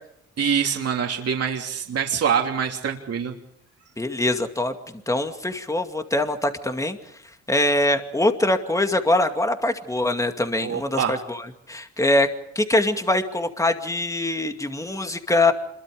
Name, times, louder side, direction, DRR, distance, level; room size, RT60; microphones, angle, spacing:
voice 1, 0.4-3.3 10.6-11.2, right 7 dB, 55° right, 2 dB, 3.1 m, -25 dB
voice 2, 4.0-7.0 7.5-12.3 12.6-15.5, left 2 dB, 10° left, 6 dB, 2.3 m, -23 dB
26.5 x 23.0 x 5.1 m, 0.72 s
cardioid pair, 90°, 30 cm